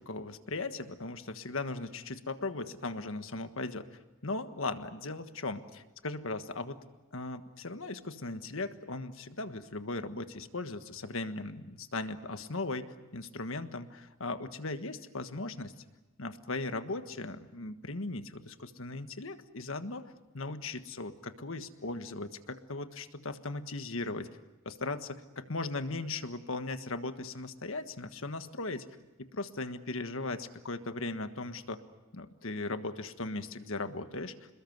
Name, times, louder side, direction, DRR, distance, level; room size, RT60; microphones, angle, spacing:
voice 1, 0.0-3.9 4.2-6.8 7.1-15.7 16.2-24.3 24.6-28.9 29.2-31.8 32.1-34.3, left 2 dB, 65° left, 9 dB, 1.5 m, -38 dB
28.0 x 21.0 x 8.0 m, 1.1 s
head